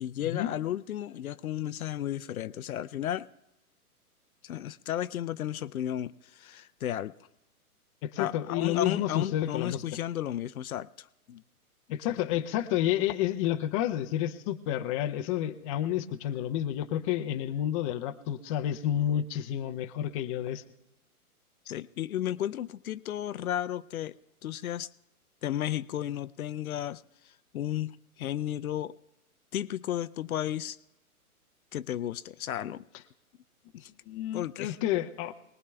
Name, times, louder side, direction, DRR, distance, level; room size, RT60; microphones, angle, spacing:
voice 1, 0.0-3.3 4.4-7.1 8.2-11.4 21.7-24.2 24.4-24.9 25.4-28.9 29.5-30.8 31.7-32.8 33.7-33.9 34.3-34.8, left 11 dB, 70° left, 16 dB, 0.6 m, -34 dB
voice 2, 8.0-9.8 11.9-20.6 34.1-35.3, left 11 dB, 25° left, 7 dB, 0.6 m, -30 dB
24.0 x 19.5 x 2.3 m, 0.92 s
hypercardioid pair, 125°, 44 cm